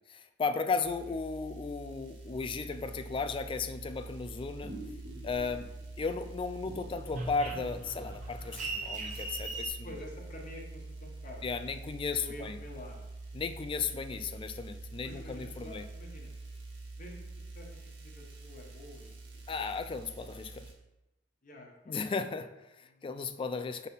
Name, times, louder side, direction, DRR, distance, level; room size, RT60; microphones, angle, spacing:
voice 1, 0.2-4.8 5.2-5.7 6.0-9.9 11.4-12.6 13.3-15.9 19.5-20.7 21.9-23.9, left 4 dB, 30° left, 10 dB, 0.3 m, -35 dB
sound 1, 0.8-20.7, right 3 dB, 75° right, 1.5 m, -46 dB
sound 2, 4.6-6.0 6.3-9.7, right 3 dB, 40° right, 1.1 m, -41 dB
voice 2, 9.8-11.6 11.8-11.9 12.2-13.1 15.0-16.3 17.0-19.2 19.5-19.8 21.4-22.0 22.8-23.2, left 1 dB, 45° left, 0 dB, 1.1 m, -49 dB
5.0 x 4.1 x 5.5 m, 0.95 s
head